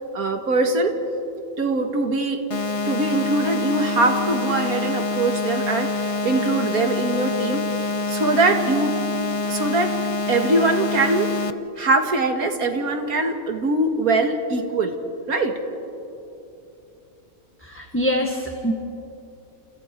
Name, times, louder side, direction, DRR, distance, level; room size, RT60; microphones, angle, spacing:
voice 1, 0.1-0.9 1.6-2.4 2.9-7.6 8.1-9.0 9.5-9.9 10.3-11.3 11.8-14.9 15.3-15.5, right 2 dB, 85° right, 5 dB, 2.3 m, -22 dB
sound 1, 2.5-11.5, left 3 dB, 35° left, 0.6 m, -26 dB
voice 2, 17.6-18.7, equal, 10° left, 1 dB, 1.5 m, -24 dB
29.5 x 29.0 x 4.6 m, 2.8 s
omnidirectional pair, 1.5 m